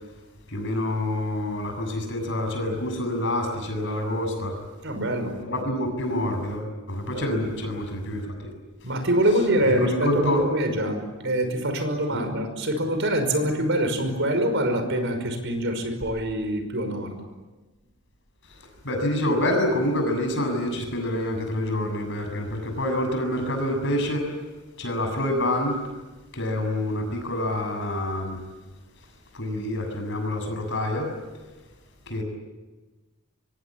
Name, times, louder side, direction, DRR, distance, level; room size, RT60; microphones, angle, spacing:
voice 1, 0.5-4.5 5.5-8.2 9.6-10.5 12.1-12.2 18.8-24.3 24.8-25.8 26.3-28.4 29.3-31.1 32.1-32.2, left 1 dB, 55° left, 5 dB, 7.2 m, -27 dB
voice 2, 4.8-5.4 7.1-7.4 8.8-17.1, right 1 dB, 60° right, 7 dB, 5.5 m, -25 dB
26.0 x 24.0 x 9.0 m, 1.2 s
head